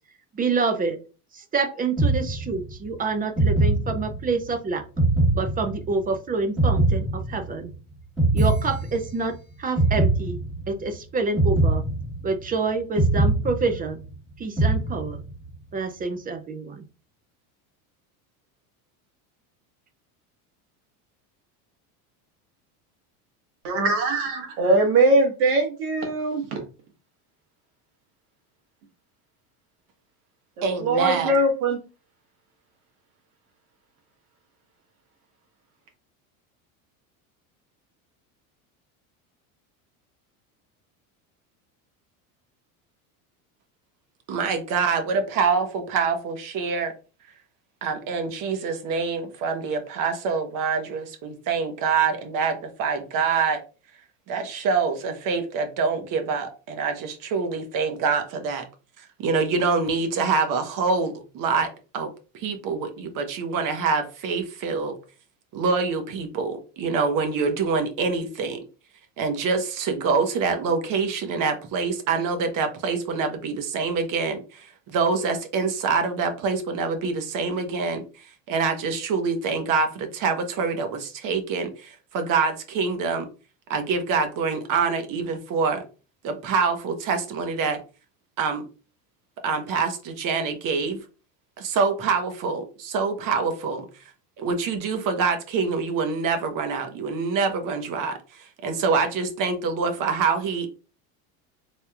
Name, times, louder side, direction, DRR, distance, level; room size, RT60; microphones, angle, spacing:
voice 1, 0.3-1.0 1.3-4.8 5.3-7.7 8.3-9.3 9.6-10.4 10.7-11.8 12.2-14.0 14.4-15.2 15.7-16.8, right 4 dB, 20° right, 0.5 m, -27 dB
sound 1, 2.0-2.8 3.4-4.4 5.0-6.1 6.6-7.7 8.2-9.3 9.8-10.8 11.4-12.5 13.0-14.1 14.6-15.4, right 2 dB, ahead, 1.4 m, -22 dB
voice 2, 23.6-26.6 30.6-31.8, right 2 dB, 80° right, 1.7 m, -21 dB
voice 3, 30.6-31.3 44.3-46.9 47.8-53.6 54.3-58.6 59.2-64.9 65.5-68.6 69.2-83.3 83.7-85.8 86.2-87.8 88.4-88.6 89.4-91.0 91.6-93.8 94.4-100.7, right 5 dB, 45° right, 1.1 m, -25 dB
4.0 x 3.5 x 2.4 m
supercardioid pair, 120°, 44 cm